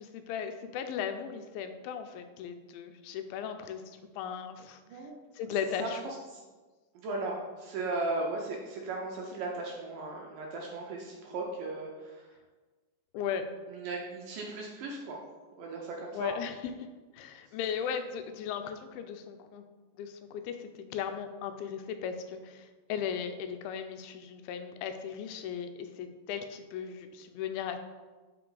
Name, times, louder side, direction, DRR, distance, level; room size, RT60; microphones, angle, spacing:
voice 1, 0.0-5.0 5.3-6.1 13.1-13.5 16.1-16.5 17.1-19.6 20.0-27.8, left 8 dB, 90° left, 8 dB, 2.4 m, -37 dB
voice 2, 5.8-6.4 7.0-12.3 13.7-15.2 15.6-16.3, right 2 dB, 75° right, -1 dB, 2.2 m, -37 dB
5.8 x 5.2 x 3.8 m, 1.3 s
omnidirectional pair, 4.2 m